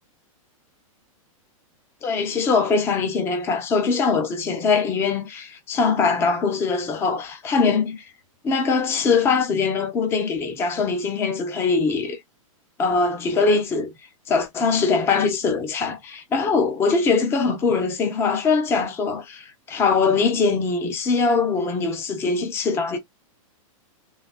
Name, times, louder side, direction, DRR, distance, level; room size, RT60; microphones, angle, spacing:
voice 1, 2.0-8.0 8.4-12.2 12.8-13.9 14.3-23.0, left 4 dB, 15° left, 0.6 m, -22 dB
3.9 x 2.2 x 2.2 m
supercardioid pair, 165°, 18 cm